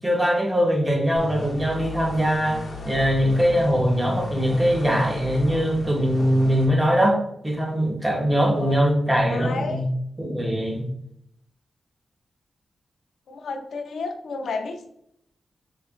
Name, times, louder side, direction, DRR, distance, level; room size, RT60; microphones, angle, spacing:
voice 1, 0.0-7.2 7.4-9.9 10.2-10.8, equal, 15° right, 0 dB, 0.8 m, -22 dB
sound 1, 1.2-6.7, left 2 dB, 60° left, 0.9 m, -35 dB
voice 2, 8.5-9.0 9.3-9.8 13.3-14.9, left 4 dB, 85° left, 4 dB, 0.5 m, -32 dB
4.7 x 2.4 x 2.4 m, 0.75 s
wide cardioid pair, 125°, 0 cm